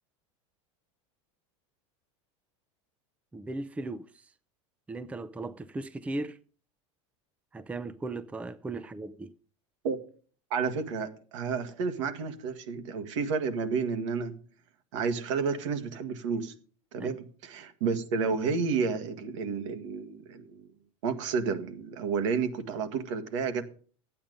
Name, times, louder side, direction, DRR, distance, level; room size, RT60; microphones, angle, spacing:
voice 1, 3.3-4.0 4.9-6.4 7.5-9.3 17.0-17.1, right 2 dB, 10° right, 0.5 m, -37 dB
voice 2, 10.5-14.3 14.9-16.5 16.9-20.7 21.0-23.6, right 5 dB, 80° right, 1.7 m, -31 dB
12.5 x 8.8 x 5.2 m
supercardioid pair, 130°, 16 cm